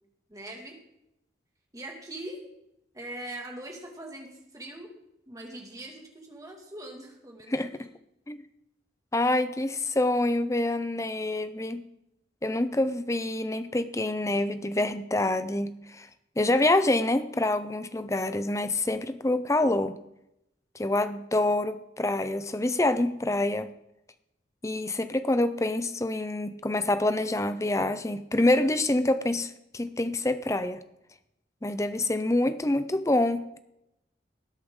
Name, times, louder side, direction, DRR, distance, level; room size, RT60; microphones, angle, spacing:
voice 1, 0.3-0.8 1.7-2.4 2.9-4.9 5.3-7.9, right 1 dB, 20° right, 1 dB, 2.2 m, -42 dB
voice 2, 9.1-11.8 12.4-16.1 16.4-20.0 20.7-23.7 24.6-30.8 31.6-33.6, left 2 dB, 15° left, 12 dB, 0.6 m, -26 dB
19.5 x 8.4 x 3.8 m, 0.84 s
head